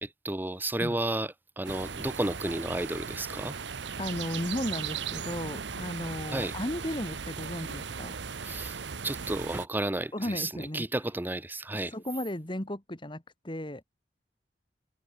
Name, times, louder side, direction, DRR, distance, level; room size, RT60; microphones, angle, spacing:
voice 1, 0.0-3.6 6.3-6.5 8.4-8.8 9.0-11.9, right 1 dB, 10° right, 0.7 m, -32 dB
sound 1, 1.6-9.7, right 6 dB, 90° right, 1.0 m, -37 dB
voice 2, 4.0-8.2 10.1-10.9 11.7-13.8, left 1 dB, 25° left, 2.4 m, -35 dB
head